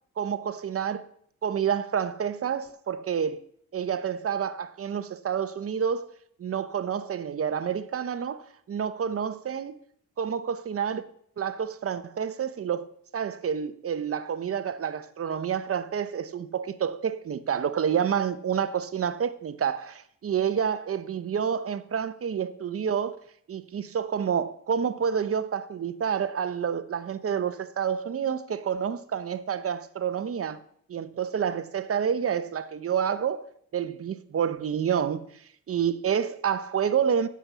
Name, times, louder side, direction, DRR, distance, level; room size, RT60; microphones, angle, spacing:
voice 1, 0.2-1.1 1.4-3.4 3.7-6.1 6.4-9.8 10.2-11.0 11.4-12.9 13.1-23.2 23.5-30.6 30.9-33.4 33.7-35.2 35.7-37.3, right 7 dB, 45° right, 0.9 m, -28 dB
8.7 x 7.2 x 8.3 m
cardioid pair, 100°, 32 cm